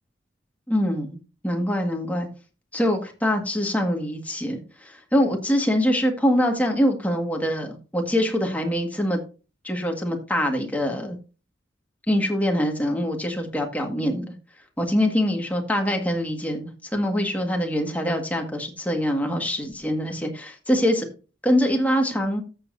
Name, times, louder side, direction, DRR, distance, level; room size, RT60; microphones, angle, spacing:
voice 1, 0.7-1.2 1.4-2.3 2.7-9.2 9.6-11.2 12.1-14.3 14.8-21.1 21.4-22.4, equal, 10° left, 2 dB, 1.8 m, -24 dB
14.0 x 7.3 x 2.7 m, 0.33 s
head